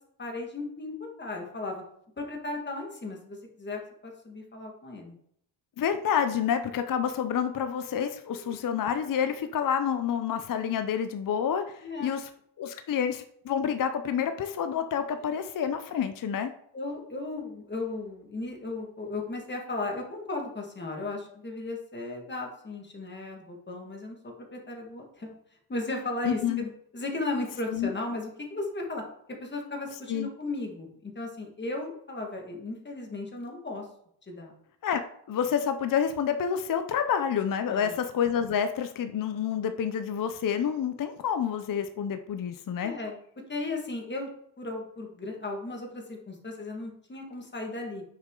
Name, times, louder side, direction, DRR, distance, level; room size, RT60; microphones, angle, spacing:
voice 1, 0.2-0.9 1.2-1.8 2.2-5.1 8.3-8.5 11.8-12.2 16.7-25.3 25.7-26.7 26.9-29.0 29.4-33.9 34.3-34.5 37.7-37.9 42.8-43.2 43.5-44.3 44.6-48.0, left 2 dB, 20° left, 1 dB, 1.7 m, -36 dB
voice 2, 5.8-12.3 12.6-16.5 26.2-26.6 27.7-27.9 30.1-30.3 34.8-35.0 35.3-42.9, left 8 dB, 45° left, 8 dB, 0.5 m, -28 dB
9.2 x 6.3 x 3.8 m, 0.70 s
wide cardioid pair, 175°, 47 cm